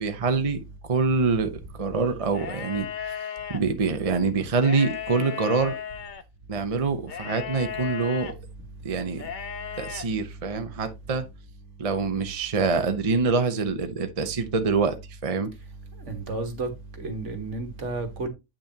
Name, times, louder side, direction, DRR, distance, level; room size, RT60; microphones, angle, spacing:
voice 1, 0.0-3.1 3.5-5.7 6.5-8.3 8.8-9.3 9.8-11.2 11.8-15.0 15.2-15.5, right 4 dB, 30° right, 0.9 m, -25 dB
sound 1, 2.3-3.6 4.5-6.2 7.1-8.3 9.1-10.0, left 8 dB, 45° left, 0.7 m, -35 dB
voice 2, 16.1-16.7 17.0-18.3, right 3 dB, 65° right, 1.8 m, -31 dB
8.6 x 6.2 x 2.8 m
omnidirectional pair, 1.4 m